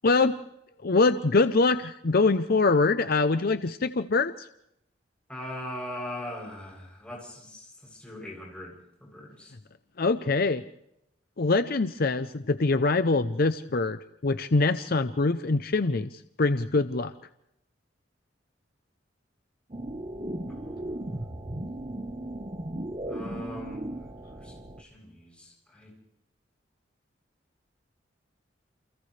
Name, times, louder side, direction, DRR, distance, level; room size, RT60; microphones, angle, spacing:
voice 1, 0.0-0.4 0.8-4.5 10.0-10.6 11.4-16.1 16.4-17.1, left 3 dB, 55° left, 11 dB, 0.7 m, -24 dB
voice 2, 5.3-8.7 9.0-9.5 20.5-21.1 23.1-23.9 24.4-25.9, left 1 dB, 5° left, -2 dB, 7.9 m, -40 dB
sound 1, 19.7-24.8, right 1 dB, 30° right, 1.2 m, -36 dB
29.5 x 28.5 x 3.3 m, 0.80 s
head